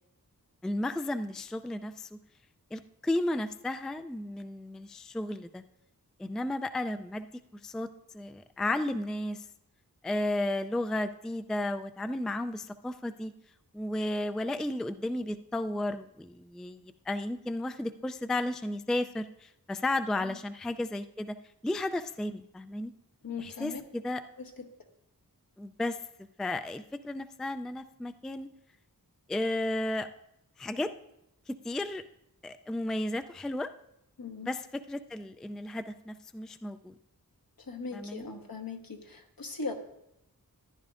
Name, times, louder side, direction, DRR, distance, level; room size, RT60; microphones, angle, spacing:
voice 1, 0.6-2.2 2.7-5.6 6.2-7.3 7.6-7.9 8.1-9.5 10.0-13.3 13.7-21.4 21.6-22.9 23.4-24.2 25.6-26.0 26.4-28.5 29.3-30.1 30.6-30.9 31.5-32.0 32.4-33.7 34.4-34.6 34.9-36.9 37.9-38.3, left 1 dB, ahead, 9 dB, 0.3 m, -33 dB
voice 2, 23.2-23.8 24.4-24.7 34.2-34.5 37.6-39.7, left 4 dB, 70° left, 3 dB, 1.2 m, -39 dB
14.0 x 10.5 x 2.5 m, 0.83 s
wide cardioid pair, 55°, 36 cm